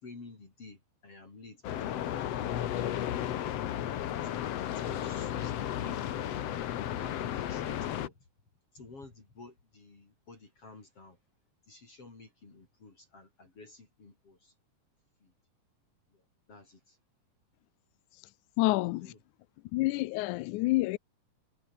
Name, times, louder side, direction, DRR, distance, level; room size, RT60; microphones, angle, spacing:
voice 1, 0.0-2.9 4.2-6.3 7.0-8.1 8.7-11.2 11.7-14.5 15.2-15.3 16.1-16.2 16.5-17.0 18.6-19.2, left 3 dB, 40° left, 5.9 m, -52 dB
sound 1, 1.6-8.1, left 11 dB, 60° left, 1.9 m, -34 dB
voice 2, 18.6-19.1 19.7-21.0, left 19 dB, 80° left, 1.8 m, -28 dB
omnidirectional pair, 4.0 m